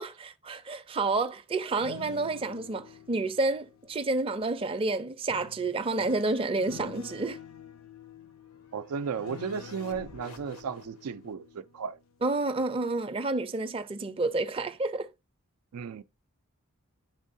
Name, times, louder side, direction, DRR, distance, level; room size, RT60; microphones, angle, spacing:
voice 1, 0.0-7.4 12.2-15.1, right 3 dB, 25° right, 0.5 m, -29 dB
sound 1, 1.6-4.5 5.3-12.2 12.6-12.9, left 8 dB, 60° left, 0.5 m, -49 dB
sound 2, 7.7-11.3, left 2 dB, 85° left, 1.2 m, -52 dB
voice 2, 8.7-12.0 15.7-16.0, right 6 dB, 90° right, 0.4 m, -35 dB
10.5 x 3.6 x 2.6 m
head